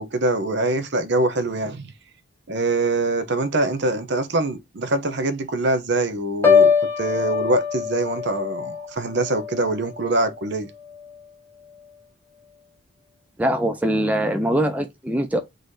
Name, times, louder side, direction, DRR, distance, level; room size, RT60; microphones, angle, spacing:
voice 1, 0.0-1.9 2.5-6.7 7.0-10.7, right 2 dB, 55° right, 0.8 m, -24 dB
Piano, 6.4-10.4 10.8-11.2, left 6 dB, 10° left, 1.0 m, -22 dB
voice 2, 13.4-15.4, right 1 dB, 5° right, 0.4 m, -22 dB
4.0 x 2.7 x 4.7 m
head